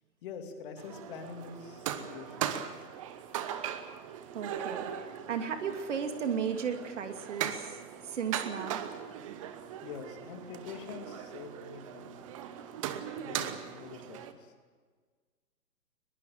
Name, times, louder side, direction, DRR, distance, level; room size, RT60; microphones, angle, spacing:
voice 1, 0.2-2.5 9.8-12.3 13.2-14.5, left 6 dB, 35° left, 5 dB, 2.7 m, -45 dB
sound 1, 0.8-14.3, right 10 dB, 20° right, 1.0 m, -39 dB
voice 2, 4.3-7.8 8.1-8.8, right 7 dB, 50° right, 6 dB, 2.7 m, -35 dB
22.0 x 21.5 x 7.5 m, 1.5 s
figure-of-eight pair, 140°, 47 cm